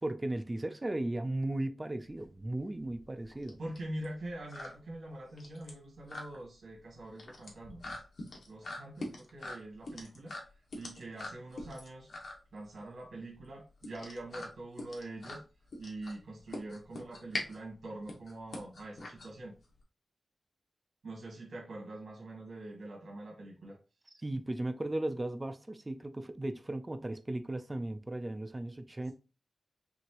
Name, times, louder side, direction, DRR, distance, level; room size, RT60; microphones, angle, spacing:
voice 1, 0.0-3.6 24.2-29.1, right 1 dB, 20° right, 0.5 m, -36 dB
sound 1, 2.0-19.8, left 2 dB, 65° left, 1.4 m, -44 dB
voice 2, 3.6-8.0 8.5-10.3 10.7-12.1 12.5-15.4 15.8-19.5 21.0-23.8, right 1 dB, 75° right, 2.1 m, -44 dB
5.9 x 2.7 x 3.0 m
wide cardioid pair, 155°, 0 cm